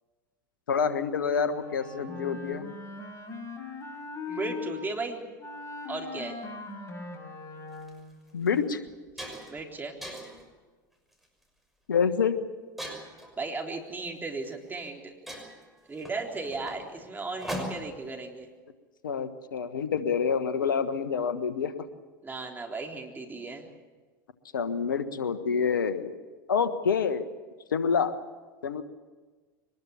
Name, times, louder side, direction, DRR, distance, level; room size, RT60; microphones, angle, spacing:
voice 1, 0.7-2.7 8.3-8.8 11.9-12.4 19.0-21.7 24.5-26.1 26.5-27.3 27.7-28.1 28.6-28.8, left 6 dB, 80° left, 11 dB, 1.4 m, -27 dB
Wind instrument woodwind instrument, 1.5-4.7 5.4-8.1, left 4 dB, 25° left, 5.4 m, -40 dB
voice 2, 4.3-5.3 5.9-6.4 9.5-10.0 13.4-15.1 15.9-18.5 22.2-23.7, right 3 dB, 15° right, 2 dB, 3.8 m, -36 dB
sound 1, 7.7-7.9 8.5-8.6 8.9-9.6 10.0-10.5 11.1-11.4 12.8-13.3 14.4-14.5 14.9-15.0 15.3-18.0, equal, ahead, 6.1 m, -39 dB
23.0 x 20.5 x 7.1 m, 1.4 s
hypercardioid pair, 85°, 11 cm